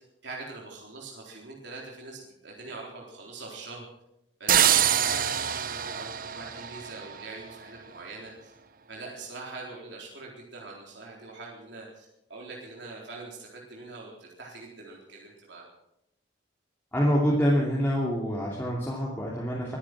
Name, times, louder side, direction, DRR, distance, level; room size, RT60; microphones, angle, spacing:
voice 1, 0.2-3.9 4.4-8.5 8.9-15.7, right 3 dB, 70° right, -2 dB, 4.0 m, -43 dB
sound 1, 4.5-7.3, right 10 dB, 45° right, 0.6 m, -25 dB
voice 2, 16.9-19.8, equal, 10° left, -5 dB, 2.6 m, -26 dB
22.5 x 9.8 x 6.2 m, 0.81 s
head